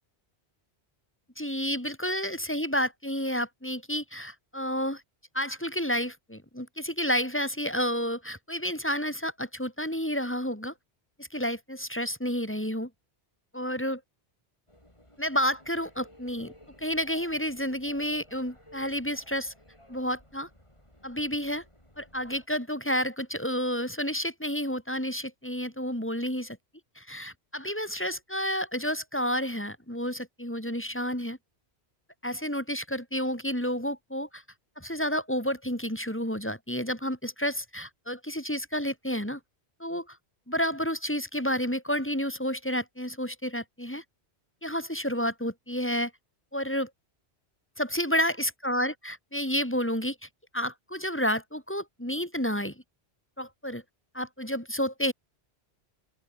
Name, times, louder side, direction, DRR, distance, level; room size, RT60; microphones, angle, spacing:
voice 1, 1.4-5.0 5.3-10.7 11.2-12.9 13.5-14.0 15.2-16.5 16.8-19.5 19.9-20.5 21.0-21.6 22.0-26.6 27.0-31.4 32.2-34.4 34.8-39.4 39.8-40.2 40.5-44.0 44.6-46.1 46.5-46.9 47.8-50.1 50.5-52.7 53.4-53.8 54.1-55.1, equal, 10° left, 3.2 m, -30 dB
sound 1, 14.7-22.5, left 1 dB, 25° left, 7.4 m, -56 dB
open air
omnidirectional pair, 1.1 m